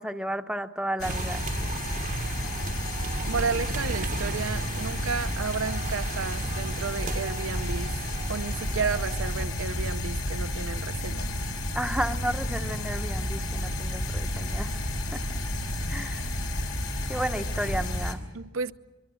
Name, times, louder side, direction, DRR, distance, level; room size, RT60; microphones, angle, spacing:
voice 1, 0.0-1.4 11.7-14.7 15.1-15.2 15.9-16.2 17.1-18.2, right 1 dB, 5° right, 7 dB, 0.8 m, -32 dB
sound 1, 1.0-18.1, left 1 dB, 75° left, 3.2 m, -31 dB
sound 2, 1.0-9.5, right 4 dB, 40° right, 0.8 m, -37 dB
voice 2, 3.3-8.0 8.3-11.3 18.3-18.7, right 5 dB, 90° right, 10 dB, 0.7 m, -32 dB
25.0 x 24.0 x 6.4 m, 1.1 s
head